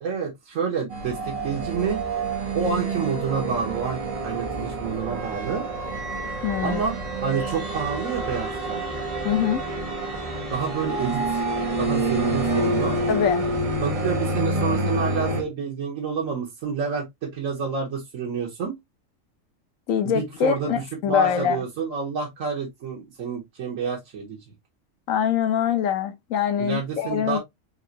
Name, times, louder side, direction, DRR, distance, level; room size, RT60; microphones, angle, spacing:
voice 1, 0.0-2.0 2.5-5.6 6.6-7.0 7.2-8.8 10.5-11.4 11.8-13.0 13.8-18.8 20.0-24.4 26.6-27.4, right 6 dB, 80° right, 1.5 m, -28 dB
sound 1, 0.9-15.4, right 2 dB, 30° right, 0.9 m, -27 dB
voice 2, 6.4-6.8 9.2-9.6 13.1-13.4 19.9-21.6 25.1-27.4, left 9 dB, 85° left, 1.2 m, -24 dB
4.7 x 2.9 x 2.6 m
omnidirectional pair, 1.4 m